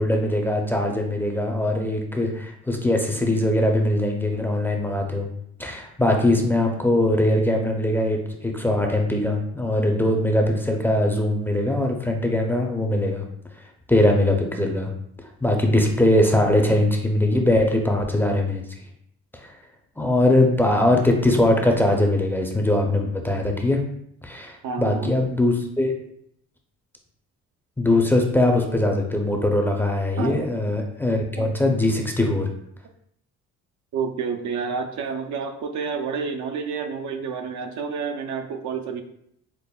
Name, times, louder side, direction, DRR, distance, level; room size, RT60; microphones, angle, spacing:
voice 1, 0.0-5.3 5.6-13.2 13.9-14.9 15.4-18.6 19.4-19.5 20.0-23.8 24.2-25.9 27.8-32.5, left 1 dB, 5° left, 1 dB, 0.4 m, -21 dB
voice 2, 24.6-25.1 30.2-30.5 31.4-31.5 33.9-39.0, right 6 dB, 75° right, 5 dB, 0.5 m, -29 dB
5.3 x 2.1 x 2.2 m, 0.71 s
cardioid pair, 90°, 30 cm